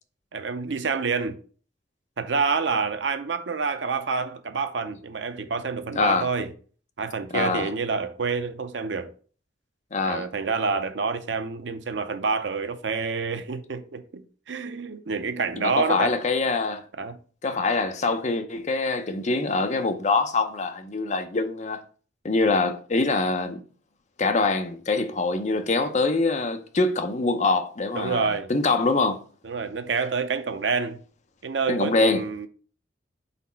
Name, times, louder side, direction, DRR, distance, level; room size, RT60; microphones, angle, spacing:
voice 1, 0.3-1.4 2.2-6.5 7.0-9.1 10.1-16.1 17.0-17.2 27.9-28.5 29.4-31.0 31.4-32.5, right 4 dB, 75° right, 0.6 m, -28 dB
voice 2, 5.9-6.3 7.3-7.7 9.9-10.3 15.6-16.9 17.4-21.8 22.2-23.6 24.2-29.2 31.7-32.3, left 3 dB, 40° left, 0.7 m, -24 dB
4.2 x 4.1 x 5.6 m
head